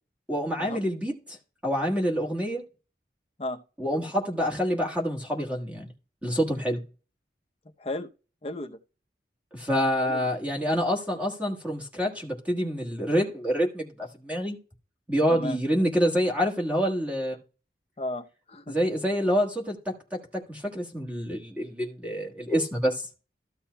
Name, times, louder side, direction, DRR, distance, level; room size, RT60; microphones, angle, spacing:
voice 1, 0.3-1.4 1.6-2.6 3.8-5.9 6.2-6.8 9.5-14.6 15.1-17.4 18.7-23.1, equal, 10° right, 1.4 m, -27 dB
voice 2, 7.8-8.1 8.4-8.8 10.0-10.2 15.3-15.6 18.0-18.8, left 1 dB, 35° left, 0.7 m, -34 dB
13.5 x 7.0 x 2.3 m
head